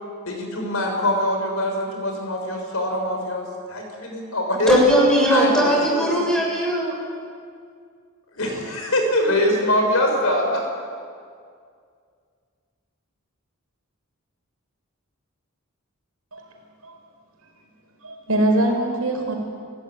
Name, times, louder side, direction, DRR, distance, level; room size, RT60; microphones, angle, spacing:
voice 1, 0.2-3.4 3.7-4.8 5.3-6.2 8.3-10.6, left 1 dB, 75° left, 2 dB, 6.5 m, -23 dB
voice 2, 4.7-6.9, equal, 5° left, -3 dB, 7.5 m, -19 dB
voice 3, 18.0-19.4, right 1 dB, 85° right, 2 dB, 5.5 m, -22 dB
29.5 x 16.0 x 9.7 m, 2.2 s
head